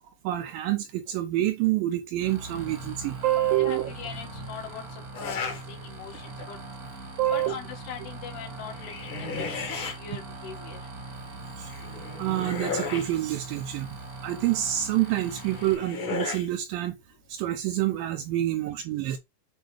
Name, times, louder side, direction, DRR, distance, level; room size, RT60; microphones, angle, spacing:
voice 1, 0.2-3.9 7.2-7.5 11.6-11.7 12.2-14.0 14.2-17.0 17.3-19.2, right 13 dB, 85° right, 2.1 m, -27 dB
sound 1, 2.2-15.7, right 2 dB, 45° right, 1.1 m, -41 dB
voice 2, 3.6-6.6 7.0-10.9, left 8 dB, 75° left, 3.7 m, -41 dB
sound 2, 5.1-5.6 6.1-6.6 8.6-10.0 11.7-13.1 15.1-16.5, left 4 dB, 45° left, 1.7 m, -34 dB
8.3 x 3.9 x 3.2 m
omnidirectional pair, 4.8 m